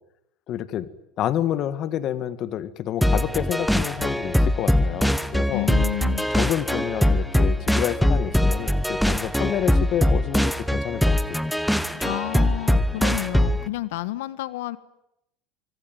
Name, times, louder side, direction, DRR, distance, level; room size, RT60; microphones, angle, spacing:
voice 1, 0.5-0.9 1.2-5.7 6.3-11.4, left 11 dB, 40° left, 14 dB, 1.9 m, -28 dB
sound 1, 3.0-13.7, left 1 dB, ahead, 1.2 m, -22 dB
voice 2, 5.5-6.2 11.9-14.8, left 16 dB, 85° left, 15 dB, 1.6 m, -30 dB
25.5 x 25.0 x 9.4 m, 0.82 s
supercardioid pair, 140°, 0 cm